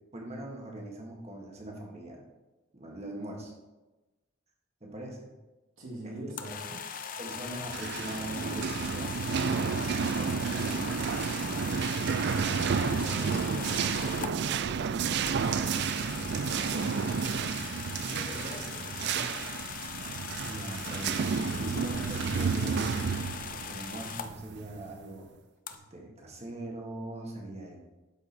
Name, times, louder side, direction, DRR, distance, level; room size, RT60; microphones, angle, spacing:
voice 1, 0.1-2.2 2.7-3.5 4.8-5.3 6.0-6.1 7.2-11.3 20.4-23.1 23.5-25.3 25.7-27.8, right 1 dB, 30° right, 0 dB, 1.7 m, -41 dB
voice 2, 5.8-6.8 12.3-17.5 17.9-19.6, right 1 dB, 80° right, -5 dB, 2.4 m, -43 dB
sound 1, 6.3-14.3 15.3-24.3 25.7-25.8, left 7 dB, 40° left, 0.6 m, -40 dB
sound 2, 7.5-24.9, right 6 dB, 55° right, 0.4 m, -31 dB
12.0 x 4.9 x 4.4 m, 1.1 s
head